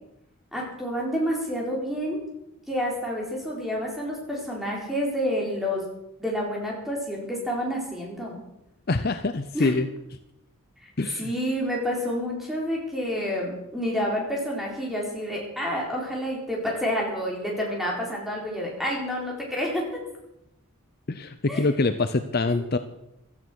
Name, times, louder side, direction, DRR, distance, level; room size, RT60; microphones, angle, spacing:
voice 1, 0.5-2.2 2.7-5.8 6.2-8.3 9.5-9.7 10.8-10.9 11.2-19.9 21.5-21.7 22.5-22.6, equal, ahead, -3 dB, 4.3 m, -29 dB
voice 2, 8.9-9.9 11.0-11.3 21.1-22.8, left 3 dB, 45° left, 10 dB, 0.7 m, -25 dB
16.0 x 13.5 x 6.3 m, 0.86 s
head